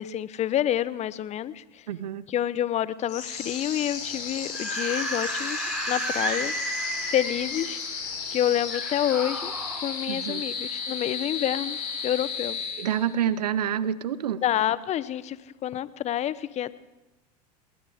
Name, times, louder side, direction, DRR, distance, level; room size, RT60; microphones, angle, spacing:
voice 1, 0.0-1.9 2.3-6.5 7.1-7.8 8.3-9.5 9.8-12.6 14.4-16.8, left 11 dB, 35° left, 17 dB, 0.8 m, -28 dB
voice 2, 1.9-2.3 10.1-10.4 12.8-14.4, right 9 dB, 75° right, 17 dB, 0.8 m, -27 dB
sound 1, 3.1-13.3, left 5 dB, 75° left, 4.0 m, -34 dB
Screaming / Screech, 4.4-7.8 8.7-9.8, right 1 dB, 5° right, 3.6 m, -32 dB
20.5 x 19.0 x 3.6 m, 1.0 s
hypercardioid pair, 80°, 21 cm